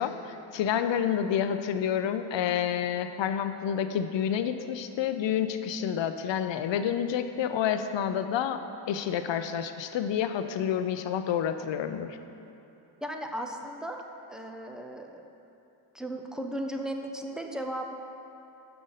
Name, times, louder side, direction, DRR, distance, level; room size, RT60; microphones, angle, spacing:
voice 1, 0.0-8.6 8.9-12.1, left 9 dB, 65° left, 9 dB, 0.5 m, -29 dB
voice 2, 13.0-14.0 14.3-15.2 15.9-17.9, right 1 dB, ahead, 3 dB, 0.3 m, -36 dB
6.8 x 5.1 x 5.5 m, 2.9 s
wide cardioid pair, 135°, 48 cm